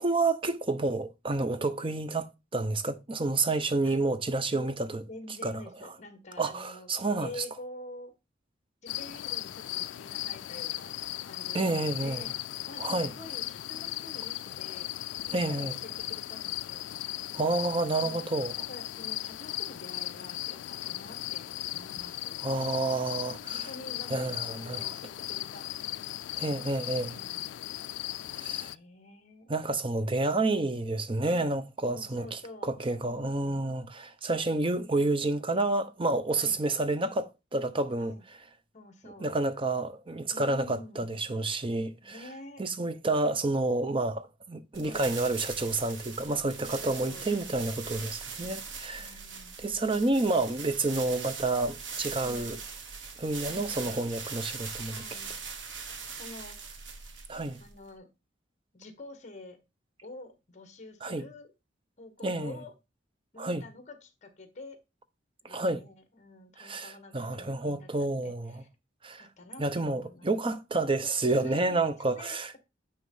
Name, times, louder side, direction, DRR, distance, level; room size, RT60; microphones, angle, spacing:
voice 1, 0.0-5.0 5.4-5.6 6.4-7.3 11.5-12.2 12.8-13.1 15.3-15.7 17.3-18.5 22.4-23.7 24.1-24.8 26.4-27.2 28.4-28.7 29.5-38.1 39.2-42.2 42.6-49.1 49.6-52.6 53.2-55.0 57.3-57.6 61.0-61.2 62.2-62.5 63.4-63.6 65.5-65.8 66.6-68.6 69.0-69.3 69.6-72.6, right 2 dB, 30° right, 0.7 m, -29 dB
voice 2, 5.1-8.1 8.8-12.4 12.7-16.9 17.9-18.3 18.7-22.3 23.2-25.7 27.0-27.5 28.4-29.5 31.2-32.7 36.4-36.6 38.0-38.2 38.7-39.3 40.3-41.2 42.0-42.6 44.8-45.1 46.6-47.3 49.0-49.6 52.2-52.5 53.5-54.0 54.9-55.4 56.1-56.6 57.6-58.1 58.7-59.6 60.0-61.5 62.0-62.7 63.3-64.8 65.4-68.7 69.2-70.3 71.3-71.8 72.1-72.6, left 2 dB, 40° left, 1.6 m, -48 dB
sound 1, 8.9-28.7, left 14 dB, 70° left, 0.3 m, -37 dB
sound 2, 44.7-57.9, right 5 dB, 75° right, 1.4 m, -41 dB
9.4 x 3.1 x 5.6 m
head